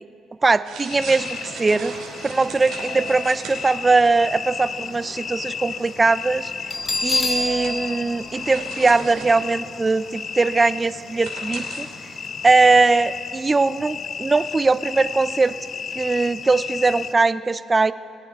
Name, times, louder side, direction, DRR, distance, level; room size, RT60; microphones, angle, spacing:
voice 1, 0.4-1.9 2.2-6.5 7.0-12.1 12.4-15.6 16.0-17.9, right 3 dB, 30° right, 16 dB, 0.4 m, -20 dB
sound 1, 0.6-12.7, right 4 dB, 75° right, 2.9 m, -39 dB
sound 2, 0.9-17.1, left 6 dB, 55° left, 0.4 m, -34 dB
Bell, 6.7-9.4, left 2 dB, 35° left, 1.4 m, -27 dB
22.0 x 8.6 x 3.6 m, 2.7 s
supercardioid pair, 60°, 0 cm